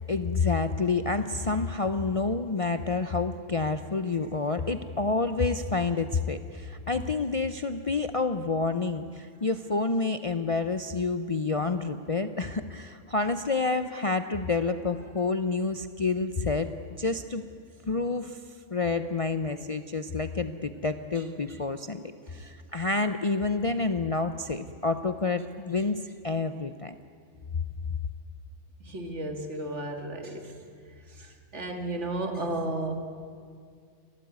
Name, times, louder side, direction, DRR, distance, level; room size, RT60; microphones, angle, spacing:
voice 1, 0.1-16.7 17.0-17.4 17.9-18.4 18.7-22.0 22.3-26.9, left 3 dB, 35° left, 9 dB, 0.6 m, -28 dB
voice 2, 28.8-30.5 31.1-33.0, right 2 dB, 65° right, 4 dB, 2.4 m, -33 dB
30.0 x 13.0 x 9.5 m, 2.2 s
omnidirectional pair, 1.3 m